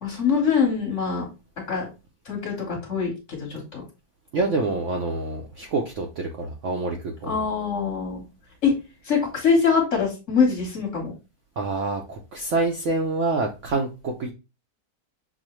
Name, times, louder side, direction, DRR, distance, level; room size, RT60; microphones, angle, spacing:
voice 1, 0.0-1.3 1.7-1.9 2.2-3.8 7.3-8.2 8.6-8.7 9.0-11.1, left 5 dB, 45° left, -1 dB, 1.4 m, -23 dB
voice 2, 4.3-7.4 11.6-14.3, right 3 dB, 65° right, 1 dB, 0.7 m, -27 dB
6.1 x 2.1 x 3.0 m, 0.29 s
omnidirectional pair, 1.8 m